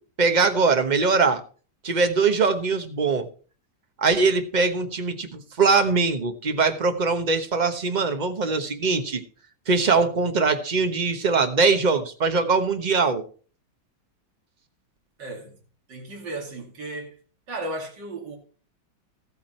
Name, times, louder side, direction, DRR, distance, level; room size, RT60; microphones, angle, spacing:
voice 1, 0.2-1.4 1.8-3.3 4.0-9.2 9.7-13.3, right 4 dB, 30° right, 0.9 m, -22 dB
voice 2, 15.2-15.6 15.9-17.2 17.5-18.4, right 2 dB, 60° right, 3.2 m, -35 dB
14.0 x 8.6 x 4.3 m
omnidirectional pair, 2.2 m